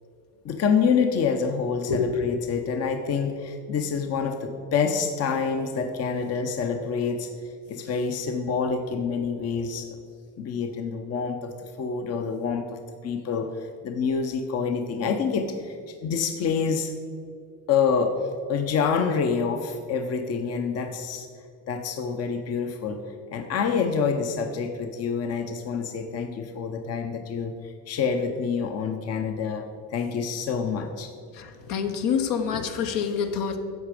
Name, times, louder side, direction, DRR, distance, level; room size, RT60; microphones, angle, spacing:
voice 1, 0.4-10.0 10.4-16.9 17.7-21.3 21.7-23.0 23.3-31.1, left 5 dB, 45° left, 6 dB, 0.8 m, -27 dB
voice 2, 31.3-33.6, left 6 dB, 70° left, 6 dB, 1.2 m, -27 dB
11.0 x 7.5 x 5.0 m, 2.3 s
cardioid pair, 125°, 35 cm